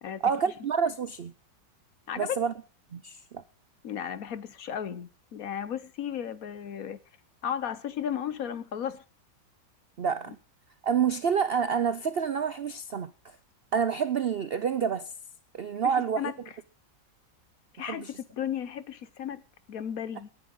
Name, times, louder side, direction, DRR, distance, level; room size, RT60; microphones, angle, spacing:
voice 1, 0.2-1.3 2.1-2.5 2.9-3.4 10.0-10.4 10.8-13.4 13.7-15.1 15.5-16.3 17.8-18.1, right 7 dB, 85° right, 0.5 m, -28 dB
voice 2, 3.8-7.0 7.4-9.0 15.8-16.3 17.7-18.0 18.3-19.4 19.7-20.3, left 9 dB, 60° left, 1.2 m, -34 dB
18.0 x 10.5 x 3.8 m
omnidirectional pair, 2.0 m